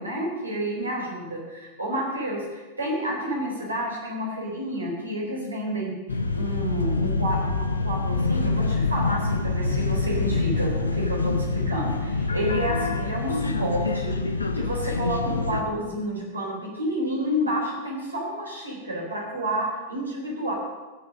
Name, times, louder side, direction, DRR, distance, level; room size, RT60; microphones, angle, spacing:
voice 1, 0.0-5.9 6.3-14.1 14.5-20.5, equal, 80° right, -1 dB, 4.1 m, -30 dB
sound 1, 6.1-15.6, left 3 dB, 75° left, 1.0 m, -26 dB
15.0 x 8.8 x 6.4 m, 1.2 s
figure-of-eight pair, 90°, 0 cm